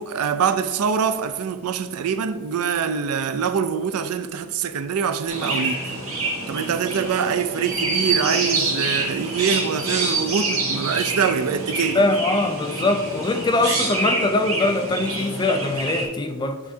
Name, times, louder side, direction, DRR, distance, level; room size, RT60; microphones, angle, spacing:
voice 1, 0.0-5.9 6.5-12.0, right 6 dB, 85° right, 0.4 m, -24 dB
Chirp tweet, 5.3-16.0, right 2 dB, 65° right, 1.4 m, -26 dB
voice 2, 11.9-16.6, left 2 dB, 20° left, 0.4 m, -22 dB
9.7 x 3.5 x 2.7 m
head